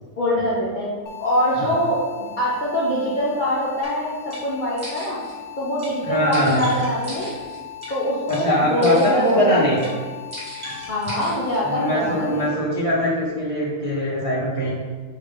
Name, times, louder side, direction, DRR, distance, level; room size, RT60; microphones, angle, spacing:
voice 1, 0.2-0.9 1.2-2.0 2.4-4.1 4.4-5.2 5.6-7.3 7.9-9.8 10.9-12.5, left 1 dB, 45° left, -7 dB, 0.7 m, -23 dB
sound 1, 1.1-12.5, left 11 dB, 80° left, 1.1 m, -38 dB
sound 2, 3.8-3.9 4.3-4.4 4.8-5.3 5.8-5.9 6.3-7.9 8.3-8.4 8.8-9.3 9.8-9.9 10.3-11.6, equal, 20° right, 1.4 m, -37 dB
voice 2, 6.1-6.6 8.3-9.8 11.6-14.7, equal, 50° right, -7 dB, 0.4 m, -22 dB
5.0 x 2.8 x 3.3 m, 1.4 s
omnidirectional pair, 1.6 m